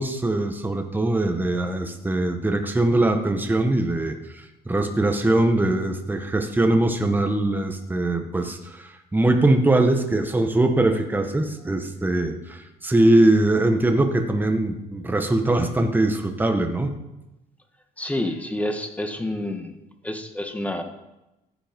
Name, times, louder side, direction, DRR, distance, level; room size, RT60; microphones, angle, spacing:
voice 1, 0.0-16.9, right 2 dB, 10° right, 5 dB, 1.5 m, -22 dB
voice 2, 18.0-19.7 20.0-20.8, left 1 dB, 10° left, 5 dB, 1.7 m, -28 dB
15.0 x 8.9 x 5.3 m, 0.94 s
cardioid pair, 110°, 17 cm